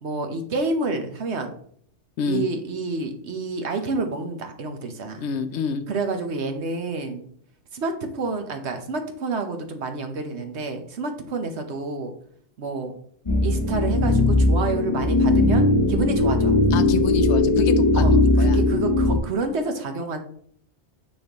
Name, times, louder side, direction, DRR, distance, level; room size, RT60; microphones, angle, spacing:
voice 1, 0.0-1.6 2.2-5.2 5.9-7.3 7.7-12.1 12.6-13.0 13.4-16.6 17.9-20.2, right 3 dB, 70° right, 6 dB, 1.2 m, -29 dB
voice 2, 5.2-5.8 16.7-18.6, left 6 dB, 75° left, 10 dB, 0.9 m, -28 dB
sound 1, 13.3-19.2, left 2 dB, 30° left, 0.9 m, -19 dB
6.7 x 6.1 x 3.0 m, 0.62 s
omnidirectional pair, 1.2 m